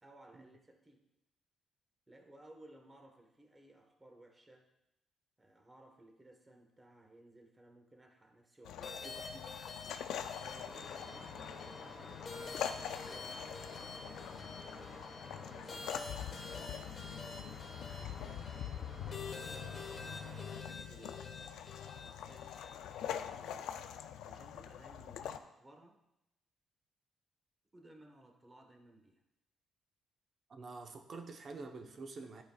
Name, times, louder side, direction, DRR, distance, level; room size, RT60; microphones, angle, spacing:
voice 1, 0.0-1.0 2.1-4.7 5.4-9.5 10.0-14.3 15.4-17.6 18.0-19.5 20.0-23.7 24.2-26.0 27.7-29.2, right 1 dB, 20° right, 3 dB, 1.2 m, -60 dB
sound 1, 8.7-25.4, left 9 dB, 85° left, 0.4 m, -44 dB
sound 2, 8.8-23.3, left 4 dB, 40° left, 1.1 m, -49 dB
voice 2, 9.0-9.4 30.5-32.4, right 3 dB, 50° right, 5 dB, 0.8 m, -47 dB
sound 3, 10.6-20.6, left 2 dB, 25° left, 1.8 m, -51 dB
11.0 x 5.0 x 2.3 m, 0.87 s
cardioid pair, 90°, 0 cm